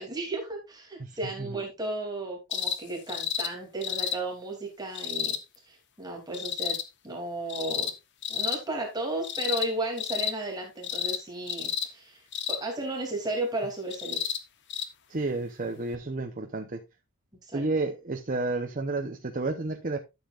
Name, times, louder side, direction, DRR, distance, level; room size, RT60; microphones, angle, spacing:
voice 1, 0.0-5.4 5.7-6.8 7.0-7.9 8.3-14.2 17.4-17.6, right 2 dB, 20° right, 2.8 m, -34 dB
voice 2, 1.0-1.6 15.1-16.8 17.5-20.0, right 2 dB, 35° right, 0.8 m, -31 dB
sound 1, 2.5-2.8 3.1-3.5 3.8-4.2 4.9-5.4 6.3-6.8 7.5-7.9 8.2-8.6 9.2-9.7 10.0-10.3 10.8-11.2 11.5-11.9 12.3-12.6 13.9-14.4 14.7-14.9 15.9-16.0, left 8 dB, 50° left, 1.0 m, -31 dB
12.5 x 7.4 x 2.5 m
head